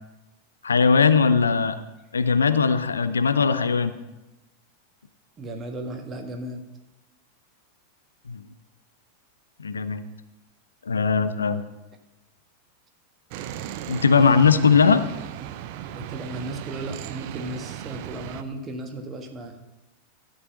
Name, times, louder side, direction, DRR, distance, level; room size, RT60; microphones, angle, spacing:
voice 1, 0.6-1.8 2.1-3.9 8.3-8.4 9.6-10.0 10.9-11.6 13.9-15.0, left 5 dB, 75° left, 12 dB, 0.6 m, -19 dB
voice 2, 5.4-6.6 15.9-19.6, right 1 dB, 25° right, 5 dB, 1.7 m, -35 dB
sound 1, 13.3-18.4, right 11 dB, 45° right, 0.6 m, -36 dB
13.0 x 5.5 x 7.2 m, 1.0 s
figure-of-eight pair, 90°, 0 cm